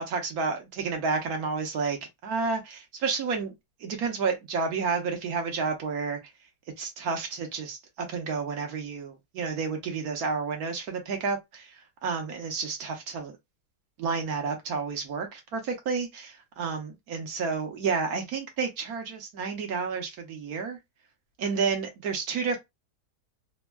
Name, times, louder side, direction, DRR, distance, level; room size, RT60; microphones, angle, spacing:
voice 1, 0.0-2.0 2.2-3.5 3.8-6.2 6.8-13.4 14.0-20.8 21.4-22.6, right 5 dB, 65° right, 1.2 m, -30 dB
3.4 x 2.2 x 2.2 m
omnidirectional pair, 1.8 m